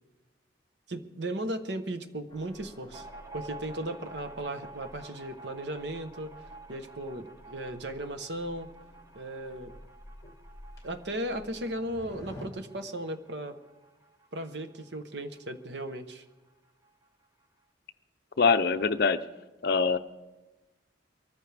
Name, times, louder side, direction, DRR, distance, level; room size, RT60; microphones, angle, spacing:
voice 1, 0.9-3.1 3.3-6.3 6.7-8.7 9.1-9.7 10.8-13.6 14.3-16.2, right 1 dB, 60° right, 9 dB, 1.0 m, -36 dB
sound 1, 2.3-12.5, left 1 dB, 20° left, 2.3 m, -51 dB
sound 2, 2.9-16.0 16.3-16.4 16.7-17.5, right 3 dB, 20° right, 0.9 m, -50 dB
voice 2, 18.4-19.2 19.6-20.0, left 5 dB, 55° left, 12 dB, 0.6 m, -23 dB
23.5 x 14.0 x 3.4 m, 1.1 s
head